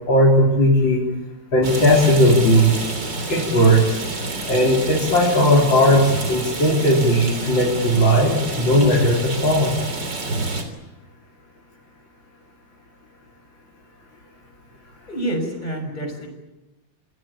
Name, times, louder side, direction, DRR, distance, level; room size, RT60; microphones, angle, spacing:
voice 1, 0.1-1.0 1.5-2.7 3.3-4.0 4.5-9.8, equal, 75° left, -3 dB, 5.1 m, -17 dB
Rain, 1.6-10.6, right 2 dB, 65° right, 4.2 m, -28 dB
voice 2, 15.1-16.3, right 1 dB, 20° left, 5 dB, 6.1 m, -27 dB
28.5 x 19.0 x 8.8 m, 1.0 s
omnidirectional pair, 2.1 m